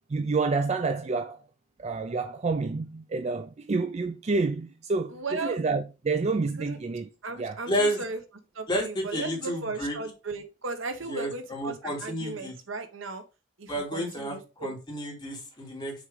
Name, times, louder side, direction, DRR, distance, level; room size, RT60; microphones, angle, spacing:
voice 1, 0.1-1.4 1.8-7.1 7.4-7.6, right 4 dB, 35° right, 0.4 m, -28 dB
voice 2, 5.1-5.6 6.6-6.8 7.2-8.2 8.5-13.2 13.6-14.7, right 3 dB, 70° right, 1.1 m, -36 dB
voice 3, 7.7-8.0 8.7-10.0 11.1-12.5 13.7-15.9, equal, 20° left, 2.7 m, -31 dB
6.3 x 3.7 x 4.9 m
head